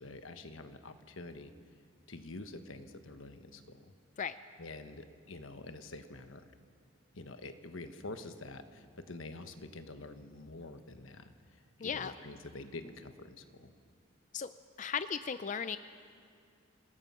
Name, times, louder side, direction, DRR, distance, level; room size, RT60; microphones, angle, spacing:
voice 1, 0.0-1.5 2.1-3.9 4.6-6.4 7.1-11.3 11.8-13.7, left 2 dB, 80° left, 8 dB, 1.3 m, -47 dB
voice 2, 11.8-12.1 14.3-14.5 14.8-15.8, left 7 dB, 40° left, 12 dB, 0.4 m, -36 dB
27.5 x 19.5 x 5.7 m, 2.3 s
head